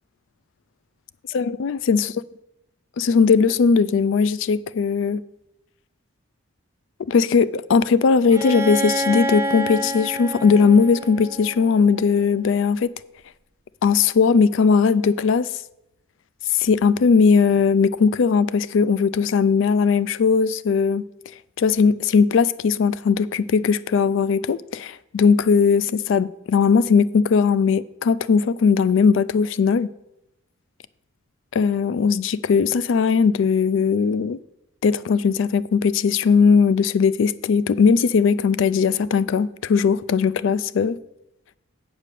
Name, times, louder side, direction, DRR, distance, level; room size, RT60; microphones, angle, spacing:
voice 1, 1.3-2.1 3.0-5.2 7.1-12.9 13.8-15.5 16.5-21.0 21.6-29.9 31.5-34.4 34.8-41.0, left 5 dB, 60° left, 0.3 m, -19 dB
Bowed string instrument, 8.3-12.1, equal, 15° right, 0.6 m, -28 dB
8.4 x 5.0 x 6.7 m
head